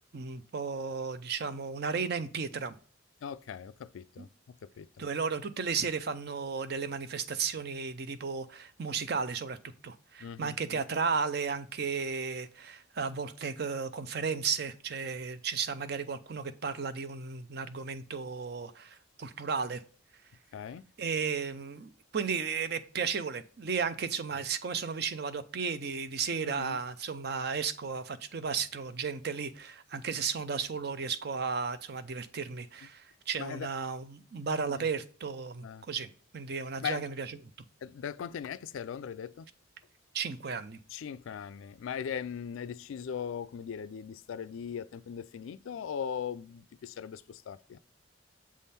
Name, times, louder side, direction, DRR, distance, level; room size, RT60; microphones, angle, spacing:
voice 1, 0.1-2.8 4.2-4.3 5.0-9.6 9.8-19.8 21.0-37.3 40.1-40.8, right 5 dB, 50° right, 0.5 m, -34 dB
voice 2, 3.2-4.3 4.6-5.1 10.2-10.8 20.5-20.9 26.4-26.8 33.4-33.7 34.7-34.9 35.6-35.8 36.8-37.0 37.8-39.5 40.9-47.8, left 7 dB, 75° left, 0.3 m, -39 dB
7.4 x 3.6 x 4.2 m
head